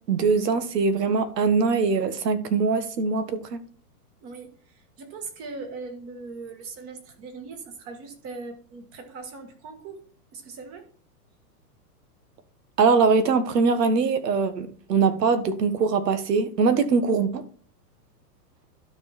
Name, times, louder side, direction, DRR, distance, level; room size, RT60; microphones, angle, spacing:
voice 1, 0.1-3.6 12.8-17.5, right 5 dB, 85° right, 1.6 m, -22 dB
voice 2, 4.2-10.0 10.3-10.9, right 4 dB, 30° right, 1.7 m, -40 dB
12.5 x 4.8 x 4.2 m
hypercardioid pair, 150°, 47 cm